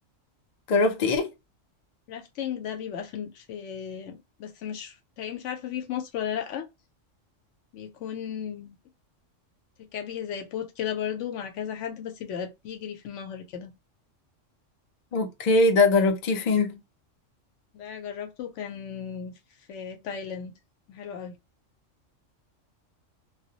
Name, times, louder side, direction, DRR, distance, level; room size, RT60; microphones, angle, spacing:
voice 1, 0.7-1.3 15.1-16.8, left 3 dB, 55° left, 0.5 m, -21 dB
voice 2, 2.1-6.7 7.7-8.8 9.9-13.7 17.7-19.3 19.7-20.5 20.9-21.3, left 8 dB, 75° left, 0.9 m, -35 dB
2.2 x 2.0 x 2.7 m
omnidirectional pair, 1.3 m